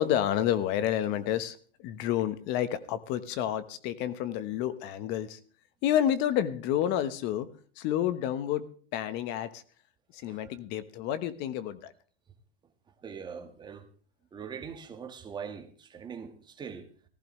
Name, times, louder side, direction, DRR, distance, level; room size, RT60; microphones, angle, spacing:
voice 1, 0.0-5.4 5.8-7.5 7.8-8.6 8.9-9.6 10.1-11.9, left 11 dB, 35° left, 1.1 m, -29 dB
voice 2, 13.0-13.8 14.3-16.8, right 6 dB, 15° right, 1.5 m, -42 dB
17.5 x 15.5 x 3.2 m
supercardioid pair, 145°, 29 cm